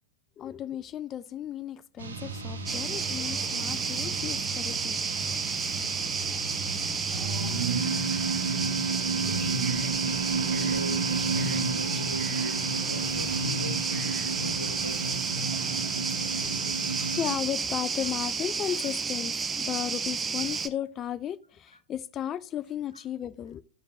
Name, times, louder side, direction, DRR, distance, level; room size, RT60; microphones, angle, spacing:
voice 1, 0.4-5.0 16.4-16.7 17.2-23.6, left 10 dB, 30° left, 0.4 m, -35 dB
sound 1, 2.0-17.4, right 4 dB, 70° right, 1.0 m, -32 dB
sound 2, 2.7-20.7, right 5 dB, 20° right, 0.7 m, -31 dB
voice 2, 9.2-9.7 10.5-15.3, left 1 dB, 85° left, 0.6 m, -40 dB
sound 3, 9.3-15.1, right 9 dB, 40° right, 1.0 m, -47 dB
13.5 x 5.1 x 2.5 m
figure-of-eight pair, 90°, 0 cm